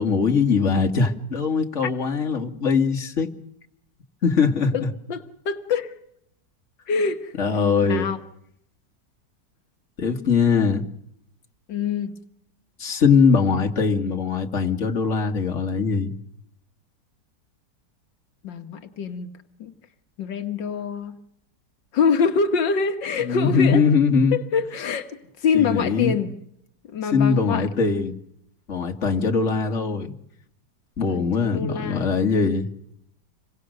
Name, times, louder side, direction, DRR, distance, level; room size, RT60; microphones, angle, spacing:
voice 1, 0.0-3.3 4.2-4.9 7.4-8.1 10.0-10.9 12.8-16.2 23.2-24.4 25.5-26.1 27.1-28.1 28.7-30.1 31.0-32.7, left 5 dB, 40° left, 4 dB, 2.4 m, -21 dB
voice 2, 4.7-5.9 6.9-7.3 7.8-8.2 11.7-12.2 18.4-19.3 19.6-19.7 20.2-21.2 21.9-23.8 24.3-26.3 26.9-27.7 31.1-32.1, left 6 dB, 85° left, 7 dB, 2.0 m, -25 dB
28.0 x 23.0 x 6.6 m, 0.73 s
omnidirectional pair, 1.9 m